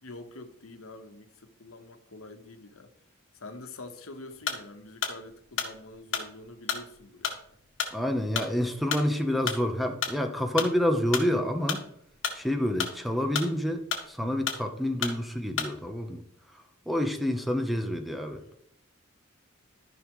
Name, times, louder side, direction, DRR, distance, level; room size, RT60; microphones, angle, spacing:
voice 1, 0.0-2.9 3.3-7.4 13.2-13.4 17.4-17.6, left 2 dB, 90° left, 1.2 m, -46 dB
sound 1, 4.4-4.7 5.0-10.2 10.6-11.9 12.1-13.7 13.9-14.7 15.0-15.2 15.6-15.8, left 6 dB, 60° left, 1.7 m, -32 dB
voice 2, 7.9-11.8 12.3-16.2 16.9-18.4, left 1 dB, ahead, 0.9 m, -28 dB
14.0 x 5.6 x 3.1 m
head